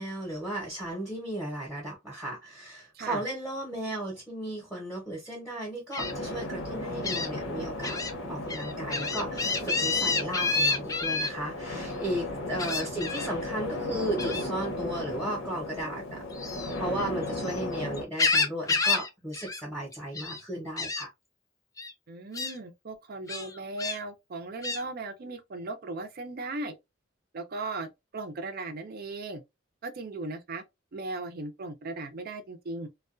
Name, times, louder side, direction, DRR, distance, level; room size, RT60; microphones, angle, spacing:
voice 1, 0.0-8.0 8.3-21.1, right 1 dB, ahead, 0.8 m, -35 dB
Gull seagull, 5.9-6.1 7.0-7.3 7.8-8.1 8.5-11.3 12.6-13.3 14.2-14.5 16.3-17.6 17.9-19.1 19.3-19.6 19.9-20.4 20.8-21.0 21.8-21.9 22.3-22.5 23.3-24.0 24.6-24.8, left 3 dB, 15° left, 0.3 m, -29 dB
sound 1, 6.0-18.0, left 1 dB, 70° left, 0.8 m, -35 dB
voice 2, 22.1-26.8 27.3-29.4 29.8-30.6 30.9-32.9, right 3 dB, 50° right, 0.5 m, -37 dB
2.3 x 2.2 x 2.4 m
head